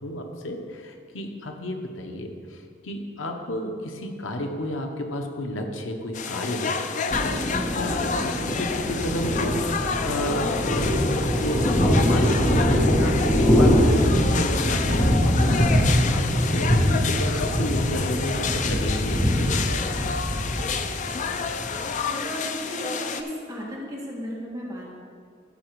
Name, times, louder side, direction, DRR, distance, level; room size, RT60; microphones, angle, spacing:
voice 1, 0.0-19.7, left 1 dB, 85° left, 3 dB, 1.0 m, -32 dB
sound 1, 6.1-23.2, left 5 dB, 40° left, 0.5 m, -29 dB
Thunder, 7.1-21.9, equal, 15° left, 1.4 m, -23 dB
voice 2, 22.1-24.9, equal, 20° right, -5 dB, 2.1 m, -34 dB
14.0 x 4.9 x 4.6 m, 2.1 s
head